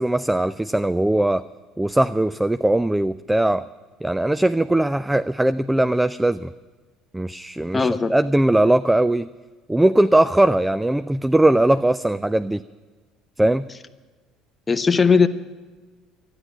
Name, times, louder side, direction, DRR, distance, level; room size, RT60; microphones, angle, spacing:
voice 1, 0.0-1.4 1.8-3.7 4.0-6.5 7.1-9.3 9.7-12.6 13.4-13.7, right 1 dB, 10° right, 13 dB, 0.3 m, -20 dB
voice 2, 7.7-8.2 14.7-15.3, left 5 dB, 20° left, 9 dB, 0.7 m, -18 dB
12.5 x 9.9 x 9.0 m, 1.3 s
hypercardioid pair, 65°, 0 cm